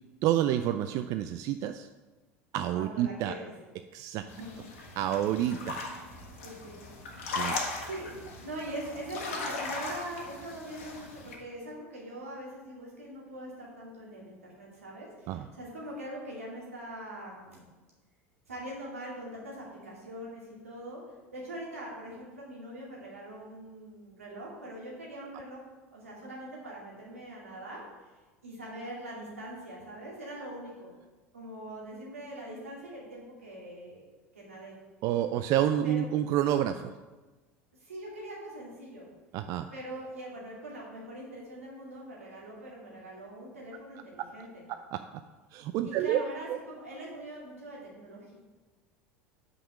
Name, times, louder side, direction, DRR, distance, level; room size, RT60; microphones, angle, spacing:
voice 1, 0.2-1.9 2.5-3.3 3.9-4.3 5.0-5.8 7.3-7.6 15.3-15.5 35.0-36.9 39.3-39.7 44.7-45.0 45.5-46.2 46.5-46.6, right 11 dB, 50° right, 9 dB, 0.3 m, -29 dB
voice 2, 2.7-3.5 4.2-4.5 6.4-6.8 7.5-17.7 18.5-21.0 21.3-25.6 25.9-28.1 28.4-30.9 31.3-34.1 34.3-34.7 35.8-36.0 37.8-39.1 39.7-44.6 45.8-48.3, right 1 dB, 85° right, -4 dB, 2.4 m, -42 dB
sound 1, 4.3-11.4, left 3 dB, 75° left, 1.5 m, -38 dB
5.7 x 5.3 x 6.3 m, 1.2 s
hypercardioid pair, 80°, 7 cm